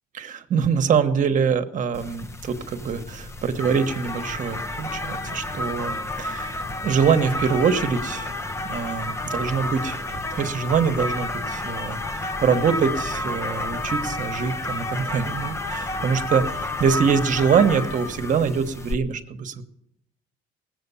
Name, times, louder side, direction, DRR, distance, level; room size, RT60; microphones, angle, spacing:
voice 1, 0.1-8.3 8.6-16.4 16.8-19.6, right 6 dB, 50° right, 8 dB, 1.2 m, -24 dB
sound 1, 1.9-18.9, left 2 dB, 15° left, 0.6 m, -30 dB
18.5 x 7.8 x 7.0 m, 0.78 s
cardioid pair, 110°, 17 cm